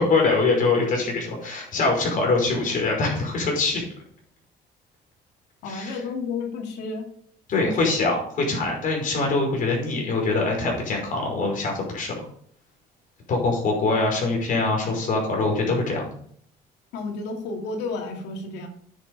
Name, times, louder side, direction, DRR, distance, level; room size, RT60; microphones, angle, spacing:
voice 1, 0.0-3.8 5.6-6.0 7.5-12.2 13.3-16.1, left 3 dB, 50° left, 0 dB, 5.4 m, -23 dB
voice 2, 5.6-7.0 7.5-7.8 16.9-18.7, left 3 dB, 85° left, 3 dB, 2.6 m, -31 dB
9.7 x 7.3 x 5.5 m, 0.64 s
cardioid pair, 110°, 17 cm